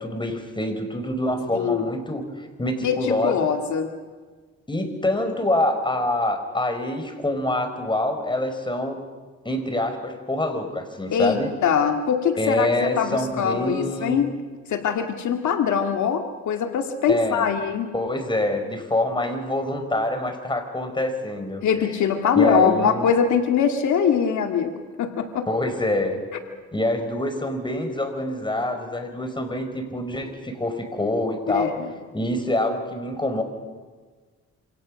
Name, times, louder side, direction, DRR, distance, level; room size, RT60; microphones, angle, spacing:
voice 1, 0.0-3.5 4.7-9.0 9.4-11.5 12.4-14.2 17.1-17.5 17.9-21.6 22.3-23.1 25.5-26.2 26.7-31.8 32.1-33.4, left 1 dB, 15° left, 6 dB, 5.1 m, -26 dB
voice 2, 1.5-1.9 2.8-3.9 11.1-12.7 13.0-14.4 14.7-17.9 21.6-25.5 31.5-31.9, left 7 dB, 70° left, 4 dB, 2.2 m, -22 dB
27.5 x 26.5 x 6.5 m, 1.4 s
cardioid pair, 90°, 30 cm